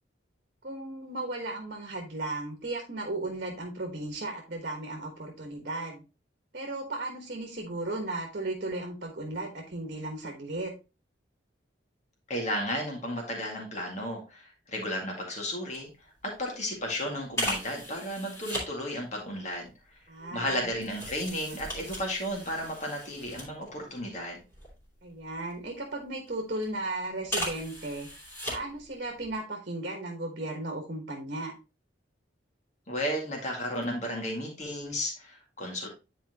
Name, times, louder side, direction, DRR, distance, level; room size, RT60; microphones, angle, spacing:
voice 1, 0.6-6.0 6.5-10.7 20.1-20.7 25.0-28.1 28.5-31.5, right 2 dB, 50° right, 1 dB, 1.4 m, -35 dB
voice 2, 12.3-15.9 16.4-19.7 20.3-24.4 32.9-35.9, equal, 35° left, 0 dB, 2.0 m, -33 dB
sound 1, 15.7-15.9 16.2-16.4 17.3-18.7 19.5-24.0 24.4-25.7 26.3-26.7 27.2-28.9 29.2-29.3, equal, 15° left, 2.9 m, -37 dB
10.0 x 4.5 x 2.9 m, 0.29 s
head